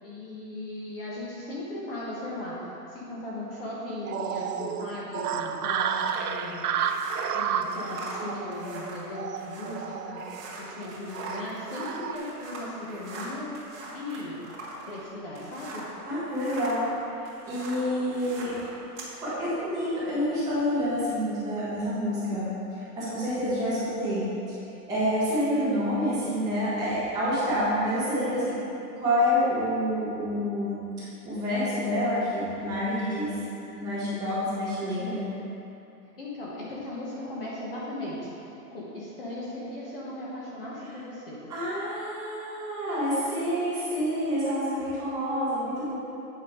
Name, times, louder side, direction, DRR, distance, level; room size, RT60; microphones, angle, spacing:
voice 1, 0.0-6.7 7.3-13.5 13.9-14.4 14.9-15.8 36.0-38.3 38.7-41.4, left 1 dB, 35° left, -6 dB, 1.3 m, -37 dB
sound 1, 4.0-12.2, right 7 dB, 65° right, 0.6 m, -32 dB
sound 2, 6.0-16.0 16.3-19.1, right 2 dB, 45° right, 1.9 m, -42 dB
voice 2, 16.0-16.9 17.5-18.5 19.2-22.5 22.7-24.6 24.9-28.5 28.9-33.3 33.8-35.2 41.5-45.9, equal, 10° right, -14 dB, 1.6 m, -28 dB
8.9 x 5.6 x 4.7 m, 2.8 s
hypercardioid pair, 175°, 49 cm